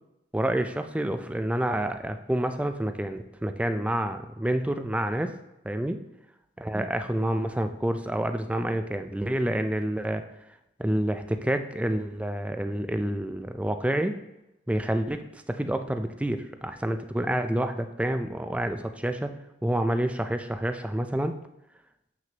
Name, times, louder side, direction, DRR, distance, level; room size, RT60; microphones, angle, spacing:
voice 1, 0.3-5.3 5.6-6.0 6.6-10.2 10.8-14.2 14.7-19.3 19.6-21.3, right 1 dB, 5° right, 8 dB, 0.4 m, -28 dB
7.6 x 6.0 x 2.9 m, 0.92 s
head